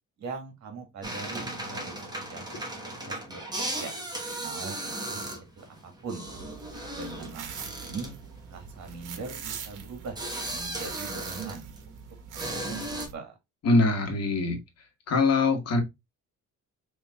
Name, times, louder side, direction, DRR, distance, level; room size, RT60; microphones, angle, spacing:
voice 1, 0.2-2.4 2.8-3.9 4.4-5.3 5.6-6.3 6.9-8.2 8.5-10.2 10.5-11.7 12.3-13.4, right 4 dB, 65° right, 1.9 m, -41 dB
sound 1, 1.0-11.9 12.4-13.1, right 1 dB, 15° right, 1.1 m, -36 dB
sound 2, 6.3-13.1, right 7 dB, 85° right, 1.2 m, -43 dB
voice 2, 13.6-14.6 15.1-15.8, left 3 dB, 55° left, 1.6 m, -23 dB
5.1 x 3.6 x 2.3 m
cardioid pair, 160°, 30 cm